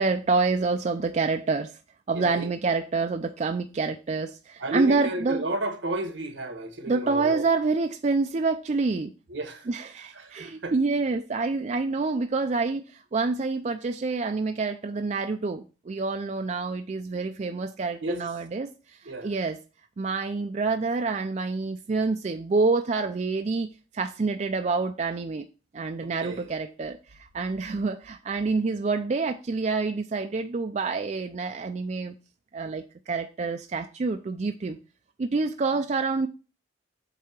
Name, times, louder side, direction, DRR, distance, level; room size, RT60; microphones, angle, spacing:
voice 1, 0.0-1.7 2.1-5.4 6.9-9.1 9.7-18.7 19.2-19.6 20.0-23.7 23.9-25.4 25.7-27.0 27.3-32.1 32.5-34.8 35.2-36.3, right 4 dB, 35° right, 0.4 m, -27 dB
voice 2, 2.1-2.5 4.6-7.5 9.3-9.7 10.2-10.7 18.0-18.2 19.0-19.3 26.0-26.5, right 1 dB, 80° right, 1.3 m, -32 dB
7.9 x 2.8 x 5.9 m
head